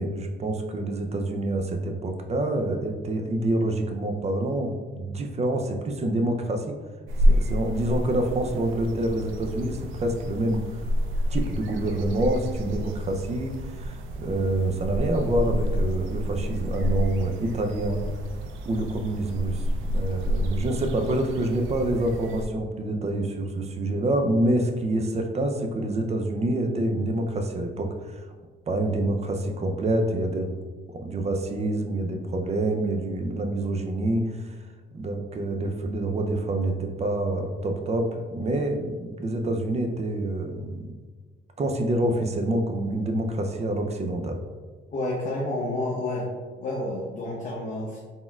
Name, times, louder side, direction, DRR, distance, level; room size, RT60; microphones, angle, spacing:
voice 1, 0.0-6.7 7.3-10.6 11.3-18.0 18.7-19.6 19.9-28.2 28.7-30.5 30.9-34.6 34.9-40.9 41.6-44.4, right 1 dB, 35° right, 5 dB, 0.5 m, -27 dB
sound 1, 7.1-22.5, equal, 80° right, 0.4 m, -29 dB
voice 2, 44.9-46.3 46.6-48.0, left 2 dB, 40° left, -4 dB, 0.8 m, -29 dB
4.1 x 3.6 x 2.3 m, 1.4 s
cardioid pair, 90°, 20 cm